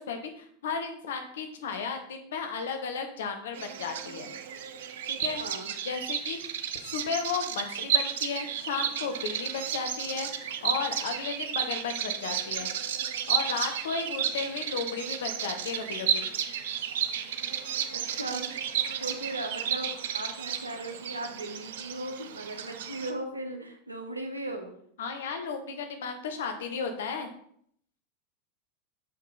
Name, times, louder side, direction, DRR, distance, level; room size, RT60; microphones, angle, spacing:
voice 1, 0.0-4.3 5.0-5.4 5.8-6.4 6.8-12.9 13.3-16.3 25.0-27.3, left 5 dB, 65° left, 6 dB, 1.0 m, -34 dB
Bird vocalization bird call bird song, 3.5-23.1, right 9 dB, 60° right, 0.5 m, -33 dB
voice 2, 5.4-5.7 17.9-18.5 19.0-24.7, right 2 dB, 85° right, 3 dB, 1.0 m, -37 dB
6.5 x 5.1 x 3.9 m, 0.64 s
figure-of-eight pair, 85°, 0 cm